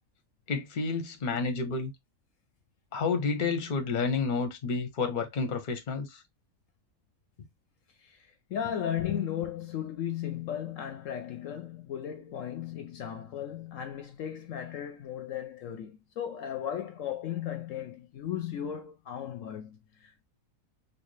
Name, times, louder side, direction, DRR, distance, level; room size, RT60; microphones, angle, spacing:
voice 1, 0.5-1.9 2.9-6.2, left 4 dB, 40° left, 0.8 m, -30 dB
voice 2, 8.0-20.2, left 9 dB, 70° left, 0.9 m, -36 dB
4.1 x 2.3 x 3.1 m
omnidirectional pair, 1.5 m